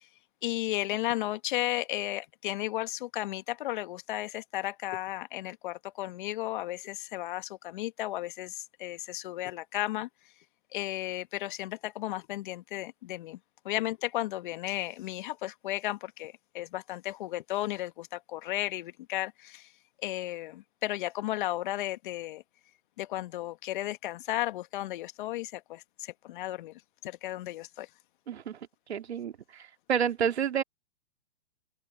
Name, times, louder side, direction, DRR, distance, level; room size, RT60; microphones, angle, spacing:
voice 1, 0.4-10.1 10.7-13.4 13.7-19.7 20.0-22.4 23.0-26.7 27.0-27.9, left 15 dB, 50° left, 1.7 m, -34 dB
voice 2, 28.3-28.6 28.9-30.6, right 8 dB, 75° right, 2.7 m, -30 dB
open air
hypercardioid pair, 135°, 32 cm